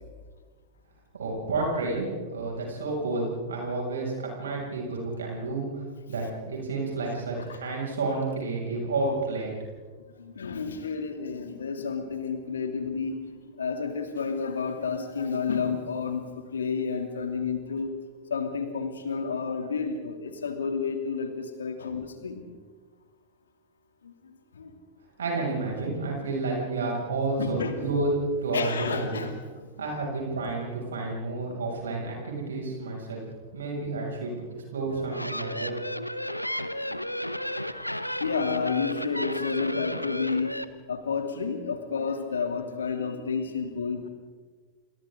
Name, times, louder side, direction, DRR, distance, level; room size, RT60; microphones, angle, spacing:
voice 1, 1.1-5.6 6.1-9.5 25.2-28.1 28.4-29.2 29.8-33.2 33.5-34.3 34.7-35.7, right 3 dB, 65° right, -1 dB, 6.8 m, -30 dB
voice 2, 7.2-7.6 10.2-13.2 13.6-18.0 18.3-22.4 24.0-24.7 25.4-25.5 27.4-27.8 28.5-29.9 31.9-32.0 36.6-37.1 38.2-40.6 40.9-44.1, left 5 dB, 70° left, 6 dB, 2.9 m, -31 dB
sound 1, 34.9-40.6, equal, 90° left, 0.9 m, -33 dB
29.5 x 27.0 x 3.9 m, 1.4 s
figure-of-eight pair, 90°, 0 cm